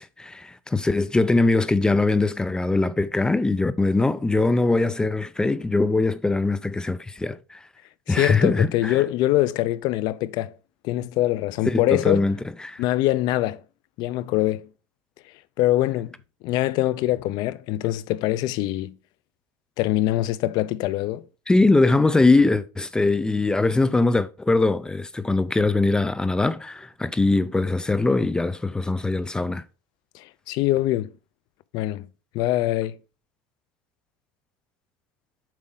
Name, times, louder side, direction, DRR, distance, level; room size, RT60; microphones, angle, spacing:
voice 1, 0.0-7.6 8.1-9.0 11.6-12.8 21.5-29.6, left 3 dB, 10° left, 0.4 m, -22 dB
voice 2, 8.1-10.5 10.8-12.3 12.8-13.6 14.0-14.7 15.6-16.1 16.4-19.0 19.8-21.2 30.1-31.1 31.7-32.1 32.3-33.0, left 15 dB, 55° left, 0.6 m, -23 dB
7.6 x 4.8 x 3.7 m
supercardioid pair, 140°, 9 cm